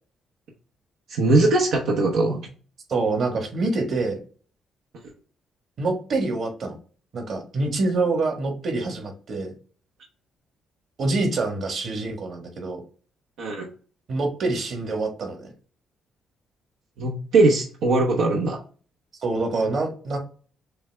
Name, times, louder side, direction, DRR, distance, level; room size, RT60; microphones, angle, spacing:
voice 1, 1.1-2.4 13.4-13.7 17.0-18.6, right 2 dB, 85° right, 0 dB, 0.9 m, -20 dB
voice 2, 2.9-4.2 5.8-6.8 7.1-9.5 11.0-12.8 14.1-15.5 19.2-20.2, right 3 dB, 55° right, 3 dB, 1.5 m, -26 dB
6.7 x 2.3 x 3.4 m, 0.40 s
cardioid pair, 90°, 0 cm